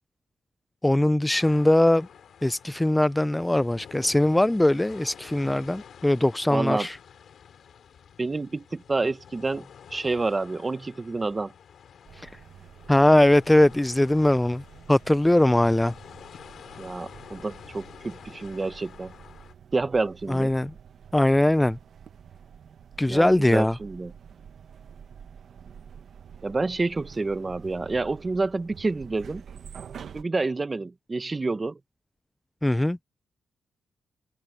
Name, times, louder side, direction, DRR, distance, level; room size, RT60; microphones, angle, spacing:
voice 1, 0.8-2.1 2.4-7.0 12.2-12.3 12.9-14.6 14.9-15.9 20.3-20.7 21.1-21.8 23.0-23.8 32.6-33.0, left 1 dB, 10° left, 0.3 m, -21 dB
sound 1, 1.3-19.5, left 8 dB, 70° left, 3.7 m, -49 dB
voice 2, 6.5-6.9 8.2-11.5 16.8-19.1 19.7-20.5 23.1-24.1 26.4-29.4 30.1-31.8, right 3 dB, 25° right, 1.0 m, -28 dB
sound 2, 12.1-30.2, right 7 dB, 65° right, 1.0 m, -48 dB
cardioid pair, 120°, 0 cm